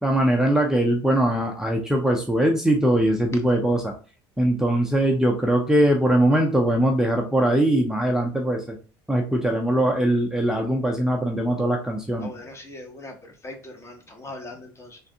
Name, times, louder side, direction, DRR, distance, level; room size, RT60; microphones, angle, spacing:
voice 1, 0.0-3.9 4.4-8.8 9.1-12.3, right 1 dB, 5° right, 1 dB, 0.5 m, -21 dB
voice 2, 12.2-15.0, left 2 dB, 25° left, 4 dB, 0.9 m, -40 dB
3.3 x 2.5 x 2.7 m, 0.37 s
supercardioid pair, 100°, 11 cm